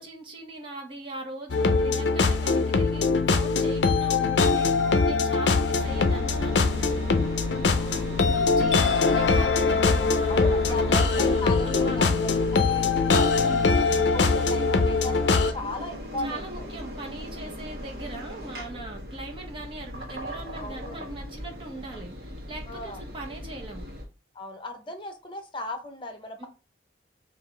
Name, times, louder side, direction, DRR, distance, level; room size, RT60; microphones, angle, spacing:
voice 1, 0.0-7.0 8.3-12.2 13.4-13.7 16.2-23.9 26.4-26.5, right 2 dB, 30° right, 1.1 m, -40 dB
sound 1, 1.5-15.5, left 4 dB, 85° left, 0.5 m, -22 dB
voice 2, 4.8-5.4 7.3-8.1 10.3-13.7 14.1-16.7 17.2-17.5 20.6-21.1 22.7-23.0 24.3-26.5, left 1 dB, 30° left, 0.8 m, -37 dB
Engine, 5.8-24.0, equal, 55° right, 1.1 m, -37 dB
5.5 x 2.5 x 3.2 m
head